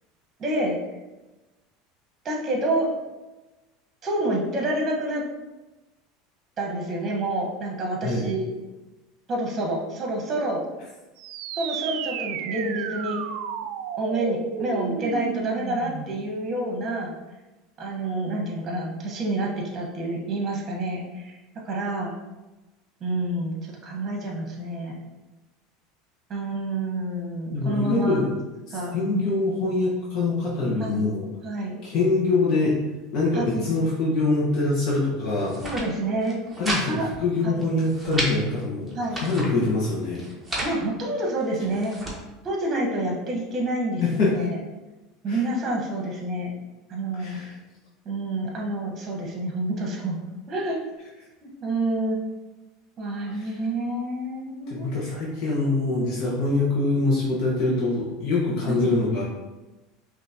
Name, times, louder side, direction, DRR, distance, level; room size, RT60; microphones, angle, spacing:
voice 1, 0.4-0.8 2.2-2.9 4.0-5.2 6.6-8.5 9.3-10.6 11.6-13.2 14.0-17.1 17.8-21.4 21.6-22.1 23.0-25.0 26.3-28.2 28.7-29.3 30.8-31.1 31.4-31.8 33.3-33.7 35.6-36.4 36.8-37.1 37.4-37.7 38.9-39.2 40.6-41.9 42.4-44.6 45.2-46.5 46.9-47.4 48.0-50.8 51.4-52.2 53.0-55.0 58.6-58.9, right 1 dB, 30° right, 0 dB, 1.3 m, -28 dB
sound 1, 11.2-16.2, right 8 dB, 65° right, 0.3 m, -33 dB
voice 2, 27.5-28.3 28.7-31.3 31.8-32.8 33.1-35.6 36.6-40.2 44.0-44.3 45.3-45.4 47.2-47.5 53.3-53.5 54.7-59.2, left 3 dB, 55° left, -5 dB, 1.2 m, -24 dB
sound 2, 35.4-35.9 36.2-36.9 37.1-37.2 37.6-38.3 38.9-39.5 40.2-40.8 41.4-42.2, right 1 dB, 5° right, 1.1 m, -31 dB
5.5 x 2.9 x 2.9 m, 1.1 s
supercardioid pair, 125°, 0 cm